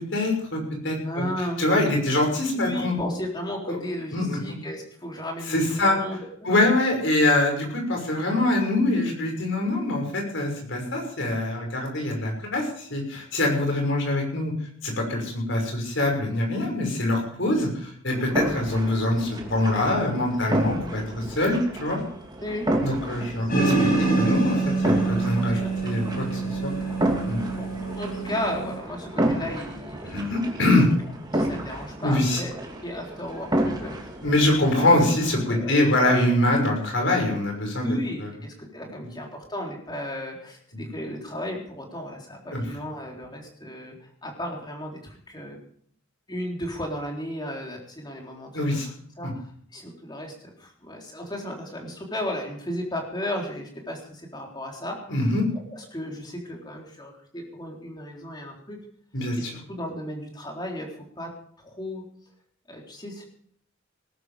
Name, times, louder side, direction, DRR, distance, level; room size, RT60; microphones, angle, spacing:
voice 1, 0.1-1.2 1.6-2.9 3.7-3.8 4.1-4.4 5.5-6.0 6.4-14.5 14.8-22.0 22.8-26.7 27.3-27.4 30.0-30.9 32.0-32.4 34.2-38.3 40.7-40.9 42.5-42.6 48.5-48.9 49.2-49.3 55.1-55.4 59.1-59.5, left 1 dB, 60° left, 1 dB, 6.2 m, -24 dB
voice 2, 1.0-1.6 2.5-6.2 6.5-6.6 22.4-22.7 23.1-23.2 25.4-25.7 27.6-27.7 27.9-30.3 31.3-32.5 32.8-34.7 35.5-36.2 37.8-44.0 44.2-45.6 46.3-49.4 49.7-55.1 55.7-58.8 59.4-60.9 61.2-61.3 61.6-62.0 62.7-63.3, left 1 dB, 20° left, 1 dB, 3.8 m, -34 dB
sound 1, 18.1-35.6, right 1 dB, 20° right, 2.7 m, -31 dB
sound 2, 23.5-28.8, right 3 dB, 45° left, 5.6 m, -26 dB
19.5 x 12.0 x 5.1 m, 0.62 s
head